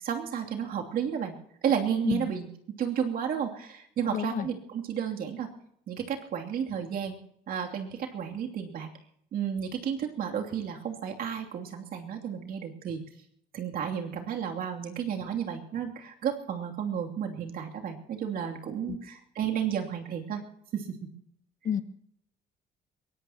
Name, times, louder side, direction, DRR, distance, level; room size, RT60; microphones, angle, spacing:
voice 1, 0.0-1.3 1.6-2.5 2.8-5.5 5.9-7.2 7.5-8.9 9.3-13.0 13.5-20.4 20.7-21.1, right 8 dB, 60° right, 2 dB, 2.9 m, -32 dB
voice 2, 4.1-4.5 18.9-19.0 21.6-21.8, left 8 dB, 50° left, 10 dB, 1.2 m, -30 dB
22.5 x 18.0 x 2.9 m, 0.69 s
cardioid pair, 110°, 17 cm